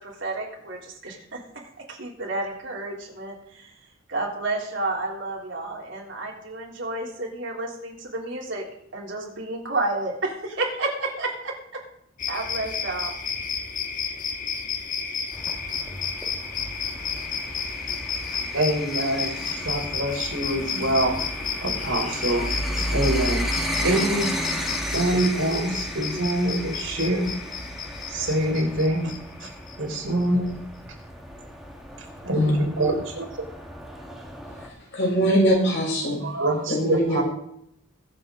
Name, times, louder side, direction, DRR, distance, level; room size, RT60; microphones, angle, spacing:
voice 1, 0.0-1.4 1.9-3.7 4.1-8.6 8.9-11.5 12.3-13.1, right 2 dB, 65° right, -1 dB, 3.5 m, -30 dB
sound 1, 12.2-30.2, left 6 dB, 40° left, 1.3 m, -32 dB
sound 2, 15.3-34.7, equal, ahead, 2.0 m, -34 dB
voice 2, 18.5-21.2 21.6-22.4 22.9-23.4 23.8-24.3 24.9-27.3 28.1-29.1 29.4-29.5 29.8-30.6 32.2-33.3 36.2-37.2, right 1 dB, 85° right, 0 dB, 4.4 m, -25 dB
voice 3, 34.9-36.2 36.7-37.2, equal, 60° left, -3 dB, 6.3 m, -22 dB
22.0 x 7.9 x 4.0 m, 0.73 s
head